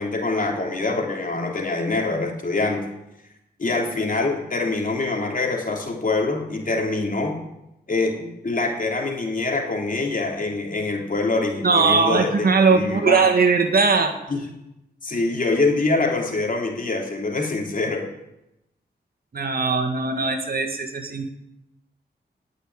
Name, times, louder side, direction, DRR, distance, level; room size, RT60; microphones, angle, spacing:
voice 1, 0.0-2.8 3.6-7.4 7.9-13.2 14.3-14.4 15.0-18.1, left 3 dB, 50° left, 1 dB, 3.4 m, -24 dB
voice 2, 11.6-14.2 19.3-21.3, right 4 dB, 60° right, 6 dB, 1.8 m, -20 dB
18.5 x 6.8 x 9.8 m, 0.89 s
wide cardioid pair, 85°, 18 cm